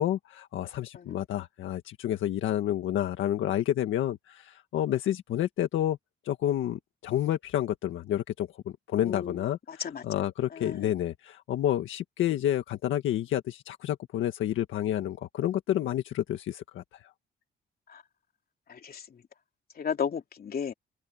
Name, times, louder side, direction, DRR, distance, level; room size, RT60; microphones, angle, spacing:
voice 1, 0.0-6.0 6.2-17.0, left 12 dB, 80° left, 1.7 m, -29 dB
voice 2, 18.7-19.0 19.8-20.7, left 7 dB, 50° left, 3.2 m, -33 dB
cardioid pair, 90°, 20 cm